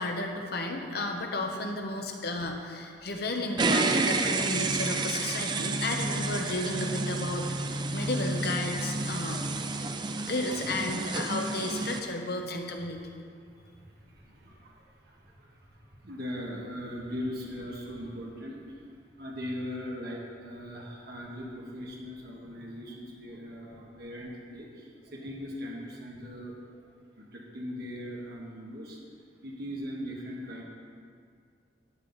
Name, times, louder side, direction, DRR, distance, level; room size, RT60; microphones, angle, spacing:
voice 1, 0.0-7.5 7.9-9.6 10.2-13.1, left 2 dB, 60° left, 3 dB, 1.0 m, -33 dB
sound 1, 3.6-12.0, right 3 dB, 25° right, 0.4 m, -30 dB
voice 2, 14.0-14.7 15.1-15.5 16.0-18.6 19.2-26.5 27.2-29.0 29.4-30.6, equal, 60° right, -3 dB, 1.4 m, -39 dB
11.5 x 7.7 x 4.0 m, 2.2 s
head